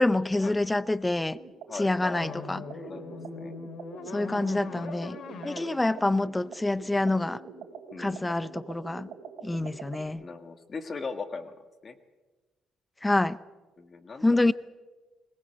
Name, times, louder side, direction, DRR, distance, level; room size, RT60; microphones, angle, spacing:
voice 1, 0.0-1.4 1.8-2.6 4.1-5.2 5.4-7.4 8.0-9.1 9.4-10.2 13.0-13.4 14.2-14.5, left 2 dB, 15° left, 0.7 m, -26 dB
sound 1, 1.3-10.1, right 6 dB, 80° right, 3.5 m, -45 dB
voice 2, 1.7-2.4 2.9-3.6 7.9-8.2 10.2-12.0 13.8-14.4, left 4 dB, 40° left, 1.7 m, -39 dB
sound 2, 2.2-7.3, left 4 dB, 65° left, 2.4 m, -42 dB
21.5 x 20.5 x 7.9 m
cardioid pair, 90°, 0 cm